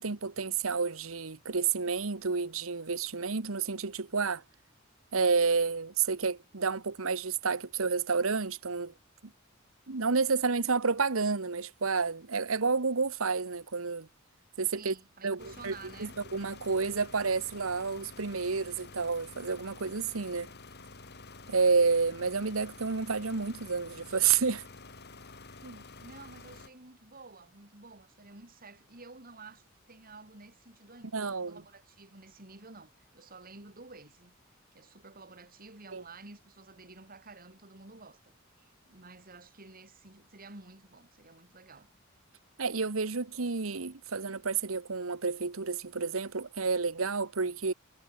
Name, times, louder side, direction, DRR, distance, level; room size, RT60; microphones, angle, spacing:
voice 1, 0.0-4.4 5.1-8.9 9.9-14.1 14.6-14.9 15.2-20.5 21.5-24.6 25.6-25.8 31.1-31.6 35.9-36.0 42.6-47.7, right 5 dB, 80° right, 1.2 m, -30 dB
voice 2, 14.8-16.1 26.0-34.3 34.7-41.9, right 3 dB, 45° right, 4.1 m, -51 dB
sound 1, 15.4-26.7, left 3 dB, 55° left, 3.4 m, -50 dB
head